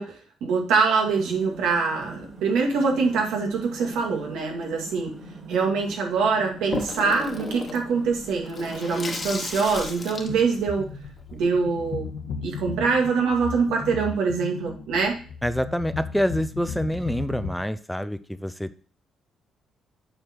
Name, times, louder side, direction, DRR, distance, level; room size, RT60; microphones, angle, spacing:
voice 1, 0.0-5.1 5.5-10.9 11.3-12.1 12.4-15.2, right 5 dB, 85° right, 1 dB, 2.1 m, -24 dB
sound 1, 0.9-10.1, right 3 dB, 40° right, 2.8 m, -43 dB
Water tap faucet / Sink (filling or washing), 6.7-11.9, left 3 dB, 35° left, 1.4 m, -35 dB
sound 2, 10.1-17.5, left 5 dB, 80° left, 1.6 m, -36 dB
voice 2, 15.4-18.8, equal, ahead, 12 dB, 0.5 m, -27 dB
7.7 x 4.5 x 4.4 m, 0.40 s
cardioid pair, 90°, 0 cm